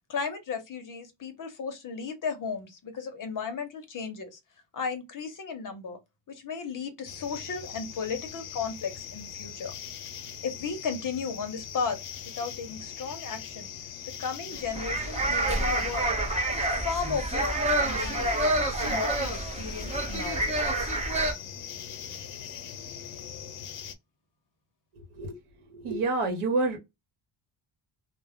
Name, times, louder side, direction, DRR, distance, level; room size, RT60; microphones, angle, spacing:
voice 1, 0.1-4.4 4.7-6.0 6.3-9.7 10.4-12.0 12.3-13.7 14.1-16.2 16.5-18.5 18.8-20.5, left 5 dB, 40° left, 0.6 m, -35 dB
sound 1, 7.1-24.0, left 8 dB, 80° left, 0.7 m, -41 dB
sound 2, 14.6-21.3, right 2 dB, 15° right, 0.5 m, -28 dB
voice 2, 24.9-25.4 25.7-26.8, right 3 dB, 80° right, 1.0 m, -28 dB
2.1 x 2.0 x 3.4 m
wide cardioid pair, 150°, 50 cm